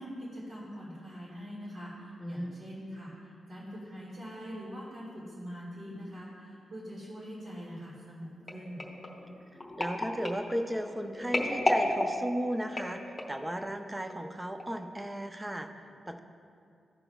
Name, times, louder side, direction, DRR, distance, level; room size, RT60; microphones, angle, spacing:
voice 1, 0.0-3.1 3.5-8.9, equal, 55° right, -9 dB, 2.0 m, -43 dB
voice 2, 2.2-2.6 9.8-16.2, equal, 10° right, 6 dB, 0.4 m, -35 dB
sound 1, 8.5-13.5 14.1-14.3 14.6-14.7, left 1 dB, 20° left, 1.0 m, -33 dB
17.0 x 5.9 x 2.3 m, 2.4 s
wide cardioid pair, 180°, 0 cm